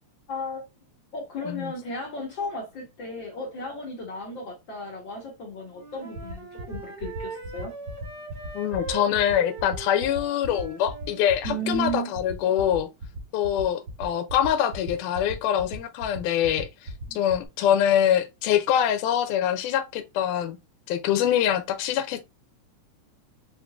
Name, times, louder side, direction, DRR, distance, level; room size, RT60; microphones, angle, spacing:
voice 1, 0.3-0.6 1.1-7.7 11.4-12.1 17.1-17.2, equal, 60° left, 1.3 m, -34 dB
Wind instrument woodwind instrument, 5.7-11.2, right 4 dB, 30° right, 0.9 m, -41 dB
sound 1, 6.1-17.4, right 2 dB, 80° right, 0.8 m, -36 dB
voice 2, 8.5-12.9 13.3-16.7 17.2-20.6 20.9-22.2, left 10 dB, 85° left, 2.1 m, -24 dB
5.6 x 3.7 x 2.3 m
omnidirectional pair, 3.6 m